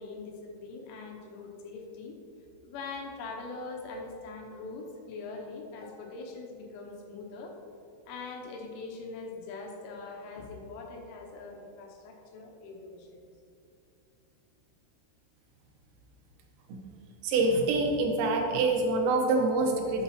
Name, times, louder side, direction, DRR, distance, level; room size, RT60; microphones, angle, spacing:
voice 1, 0.0-2.2 2.6-7.6 8.1-13.2, left 3 dB, 80° left, 1 dB, 3.2 m, -42 dB
voice 2, 17.2-20.0, right 3 dB, 85° right, 1 dB, 3.7 m, -26 dB
12.5 x 8.0 x 2.9 m, 2.6 s
omnidirectional pair, 5.8 m